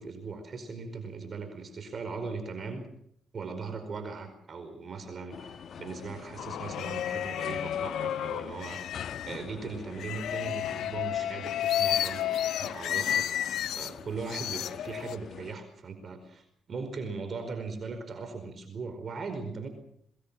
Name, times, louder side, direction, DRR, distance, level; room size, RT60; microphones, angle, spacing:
voice 1, 0.0-2.9 3.3-8.9 9.2-12.2 12.6-13.3 13.7-19.7, right 4 dB, 45° right, 8 dB, 4.8 m, -39 dB
sound 1, 5.3-15.5, left 7 dB, 60° left, 1.6 m, -45 dB
sound 2, 6.4-9.4 10.0-13.9 14.3-15.2, left 11 dB, 75° left, 0.8 m, -31 dB
23.5 x 20.5 x 7.5 m, 0.69 s
cardioid pair, 90°, 0 cm